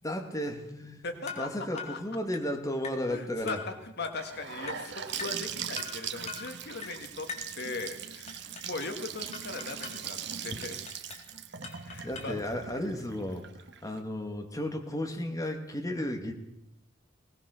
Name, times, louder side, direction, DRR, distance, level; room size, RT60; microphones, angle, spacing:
voice 1, 0.0-1.0 1.4-3.6 12.0-13.4 13.8-16.3, left 1 dB, 20° left, 3 dB, 2.5 m, -34 dB
voice 2, 1.0-1.5 1.9-2.0 3.1-7.3 7.5-10.2 10.4-10.8 11.8-12.3, left 3 dB, 60° left, 6 dB, 1.9 m, -39 dB
sound 1, 1.3-1.5 1.8-2.0 2.3-2.5 2.8-3.1 3.5-3.7 4.0-4.2 4.7-4.9 5.2-5.4 5.8-6.0 6.3-6.5 6.8-7.0 7.3-7.6 8.3-9.0 9.3-10.0 10.6-11.3 11.6-12.4, left 5 dB, 35° left, 3.7 m, -42 dB
Gurgling / Sink (filling or washing) / Bathtub (filling or washing), 4.2-14.0, right 8 dB, 65° right, 1.5 m, -40 dB
21.0 x 19.0 x 6.9 m, 0.82 s
head